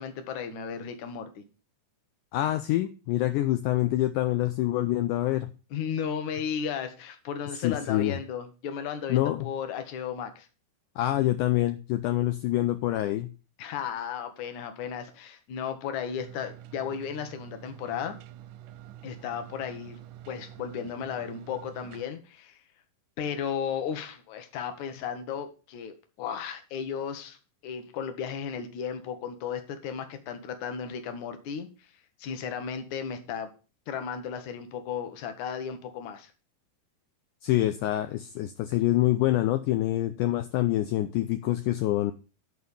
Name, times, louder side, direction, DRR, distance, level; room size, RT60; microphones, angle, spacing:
voice 1, 0.0-1.4 5.7-10.5 13.6-18.2 19.0-20.0 20.3-22.6 23.2-27.4 27.6-31.9 32.2-33.5 33.9-36.3, left 7 dB, 60° left, 7 dB, 2.3 m, -35 dB
voice 2, 2.3-5.5 7.6-8.2 9.1-9.5 11.0-13.3 37.4-42.1, left 15 dB, 80° left, 9 dB, 1.9 m, -26 dB
sound 1, 16.2-22.0, right 12 dB, 80° right, 1.8 m, -47 dB
11.0 x 4.2 x 7.0 m, 0.34 s
omnidirectional pair, 4.1 m